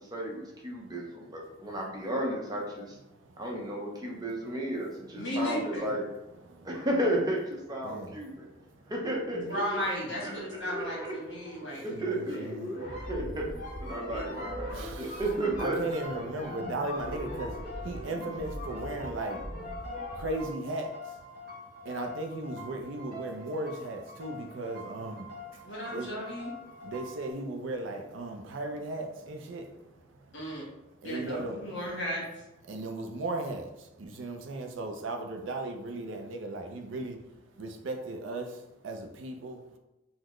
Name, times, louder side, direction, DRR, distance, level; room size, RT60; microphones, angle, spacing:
voice 1, 0.0-3.0 3.4-6.0 6.6-8.5 8.9-9.8 10.2-10.9 11.4-12.4 12.7-13.4 13.8-15.8, right 1 dB, 20° right, -2 dB, 0.6 m, -33 dB
voice 2, 5.1-6.0 9.3-12.7 14.1-14.3 25.6-26.5 30.3-30.6 31.0-32.4, equal, 60° left, -4 dB, 1.3 m, -35 dB
sound 1, 10.6-18.6, equal, 20° left, 1.2 m, -43 dB
voice 3, 11.9-12.7 14.7-15.2 15.6-17.5 17.8-19.4 20.2-20.9 21.9-25.2 25.9-26.1 26.8-29.7 31.0-31.6 32.7-33.7 34.0-37.2 37.6-38.5 38.8-39.6, right 2 dB, 70° right, 5 dB, 0.4 m, -36 dB
sound 2, 12.7-20.5, equal, 40° left, 0.5 m, -40 dB
sound 3, 15.8-27.3, left 3 dB, 50° right, 0.9 m, -46 dB
3.9 x 2.0 x 3.1 m, 0.97 s
head